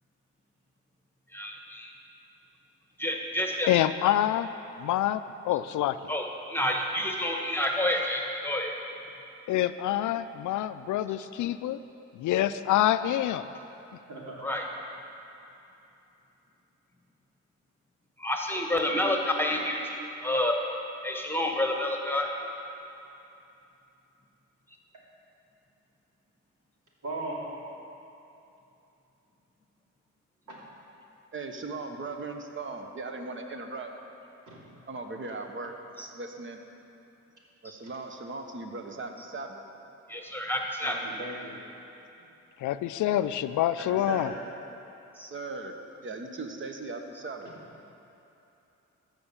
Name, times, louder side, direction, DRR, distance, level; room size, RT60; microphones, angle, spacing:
voice 1, 1.3-1.9 3.0-3.7 6.1-8.7 14.4-14.7 18.2-20.6 21.0-22.3 40.1-41.0 45.2-45.3, left 1 dB, 5° left, 1 dB, 1.3 m, -29 dB
voice 2, 3.7-4.5 4.8-6.1 9.5-11.8 12.1-13.5 42.6-44.3, left 12 dB, 75° left, 13 dB, 0.4 m, -26 dB
voice 3, 27.0-27.4 30.5-30.6 34.5-34.6 40.8-41.5 43.8-44.3, right 2 dB, 75° right, -5 dB, 2.9 m, -37 dB
voice 4, 31.3-33.9 34.9-36.6 37.6-39.6 45.2-47.5, right 3 dB, 40° right, 4 dB, 1.2 m, -38 dB
14.0 x 5.4 x 7.1 m, 2.9 s
cardioid pair, 75°, 31 cm